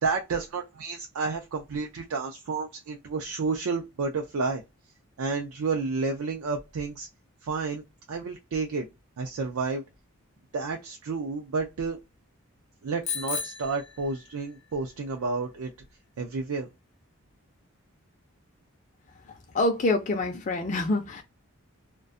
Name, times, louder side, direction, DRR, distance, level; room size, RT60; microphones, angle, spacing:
voice 1, 0.0-4.6 5.2-7.1 7.4-7.8 8.1-8.9 9.2-9.8 10.5-12.0 12.8-15.7 16.2-16.7, right 4 dB, 80° right, 0.4 m, -30 dB
Bicycle bell, 13.0-14.6, left 6 dB, 70° left, 0.7 m, -35 dB
voice 2, 19.3-21.2, left 2 dB, 35° left, 0.4 m, -26 dB
2.4 x 2.2 x 2.5 m
head